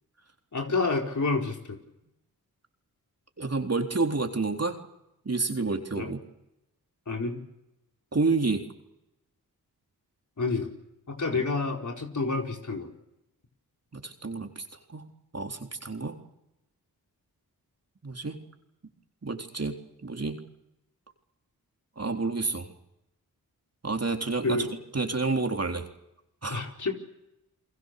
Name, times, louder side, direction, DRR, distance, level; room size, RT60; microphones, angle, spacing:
voice 1, 0.5-1.8 5.9-6.1 7.1-7.4 10.4-10.7 11.1-12.9 24.4-24.7 26.5-26.9, left 3 dB, 50° left, 2 dB, 4.5 m, -29 dB
voice 2, 3.4-4.8 5.3-6.2 8.1-8.6 11.3-11.5 13.9-14.6 14.9-16.2 18.0-18.4 19.2-20.4 22.0-22.7 23.8-25.9 26.4-26.6, right 3 dB, 40° right, 4 dB, 3.8 m, -29 dB
30.0 x 21.5 x 6.8 m, 0.89 s
cardioid pair, 40°, 37 cm